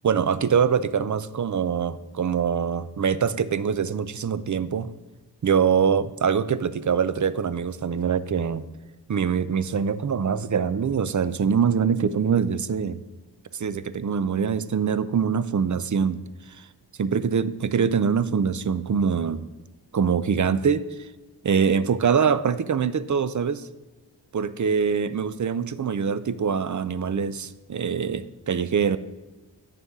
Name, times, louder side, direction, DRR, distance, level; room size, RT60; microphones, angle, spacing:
voice 1, 0.0-4.9 5.4-8.6 9.1-13.0 13.6-16.2 16.6-16.7 17.0-19.5 19.9-20.9 21.4-23.6 24.3-29.0, right 6 dB, 45° right, 14 dB, 0.5 m, -24 dB
9.3 x 6.8 x 3.6 m, 1.2 s
wide cardioid pair, 60°, 44 cm